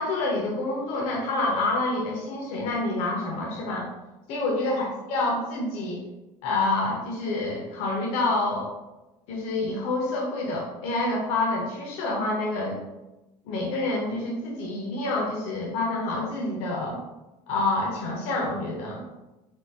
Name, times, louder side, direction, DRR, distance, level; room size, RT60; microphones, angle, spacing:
voice 1, 0.0-3.9 4.3-6.0 6.4-8.7 9.3-12.8 13.4-17.0 17.5-19.0, left 2 dB, 60° left, -2 dB, 0.6 m, -27 dB
3.5 x 2.7 x 2.7 m, 1.0 s
cardioid pair, 165°, 12 cm